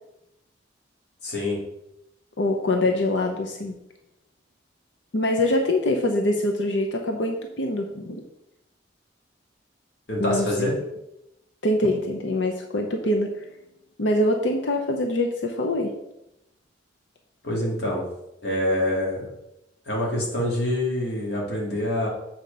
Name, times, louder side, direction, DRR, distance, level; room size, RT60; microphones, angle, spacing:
voice 1, 1.2-1.6 10.1-10.7 17.4-18.0 18.4-19.3 19.9-22.1, left 1 dB, 60° left, -3 dB, 2.5 m, -25 dB
voice 2, 2.4-3.8 5.1-8.2 10.2-10.7 11.6-13.4 14.0-15.9, left 1 dB, 75° left, 2 dB, 0.8 m, -24 dB
7.6 x 4.4 x 5.3 m, 0.87 s
head